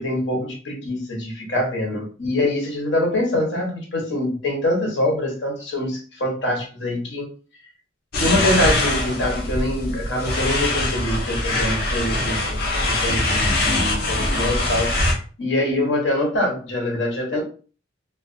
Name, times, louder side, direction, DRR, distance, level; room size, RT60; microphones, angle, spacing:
voice 1, 0.0-7.3 8.2-17.4, left 1 dB, 75° left, 0.9 m, -24 dB
sound 1, 8.1-15.1, left 2 dB, 55° left, 0.6 m, -22 dB
2.3 x 2.2 x 2.5 m
head